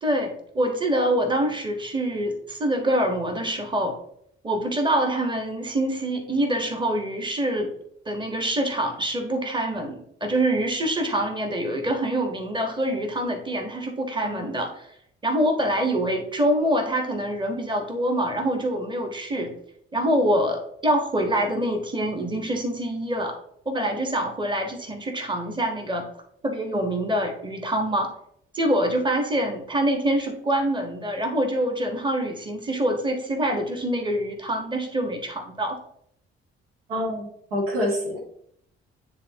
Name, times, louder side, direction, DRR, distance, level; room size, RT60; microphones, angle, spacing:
voice 1, 0.0-4.0 4.4-7.7 8.0-14.9 15.2-19.5 19.9-23.4 23.6-26.1 26.4-28.1 28.5-35.8, right 1 dB, 15° right, 4 dB, 1.4 m, -25 dB
voice 2, 14.2-14.6 36.9-38.2, equal, 75° right, -1 dB, 1.5 m, -27 dB
10.0 x 3.5 x 2.9 m, 0.69 s
figure-of-eight pair, 45°, 30 cm